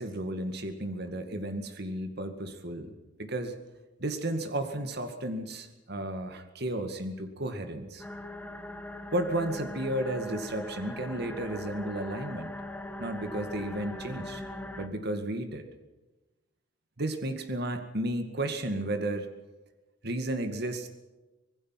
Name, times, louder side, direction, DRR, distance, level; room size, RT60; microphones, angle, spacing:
voice 1, 0.0-2.9 3.2-3.5 4.0-8.0 9.1-12.5 13.0-14.4 14.8-15.7 17.0-19.3 20.0-20.9, right 1 dB, 55° right, 7 dB, 2.2 m, -33 dB
sound 1, 8.0-14.9, left 1 dB, 10° left, 1.5 m, -40 dB
25.5 x 19.5 x 5.9 m, 1.1 s
head